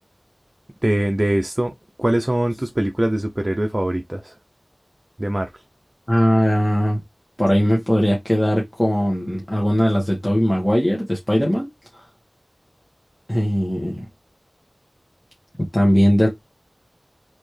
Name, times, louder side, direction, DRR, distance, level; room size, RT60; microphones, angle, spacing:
voice 1, 0.8-1.7 2.0-4.2 5.2-5.5, right 1 dB, 35° right, 0.6 m, -22 dB
voice 2, 6.1-7.0 7.4-11.7 11.9-12.0 13.3-14.1 15.7-16.3, equal, 20° left, 1.6 m, -19 dB
4.3 x 3.5 x 3.3 m
wide cardioid pair, 45°, 0 cm